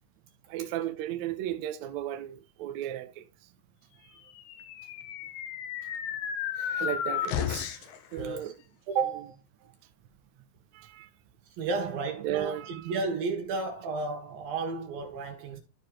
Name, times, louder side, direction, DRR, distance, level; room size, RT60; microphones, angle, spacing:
voice 1, 0.5-3.3 6.6-7.8 8.1-8.5 10.7-11.1 12.2-12.8, right 12 dB, 90° right, 1.6 m, -35 dB
sound 1, 4.4-8.0, left 9 dB, 85° left, 2.9 m, -33 dB
voice 2, 8.1-8.5 8.9-9.4 11.6-15.6, right 4 dB, 70° right, 3.4 m, -32 dB
13.5 x 4.6 x 3.1 m
omnidirectional pair, 4.4 m